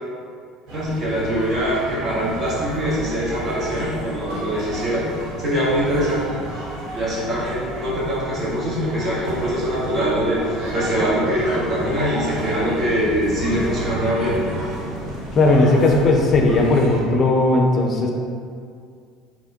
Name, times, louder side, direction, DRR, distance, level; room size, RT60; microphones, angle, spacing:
voice 1, 0.7-5.1 5.4-6.4 6.9-14.5, equal, 45° right, -6 dB, 1.3 m, -23 dB
sound 1, 0.7-17.0, right 1 dB, 65° right, 1.1 m, -32 dB
voice 2, 15.4-18.1, left 2 dB, 45° left, 1 dB, 0.5 m, -17 dB
4.1 x 3.0 x 2.7 m, 2.3 s
hypercardioid pair, 75°, 0 cm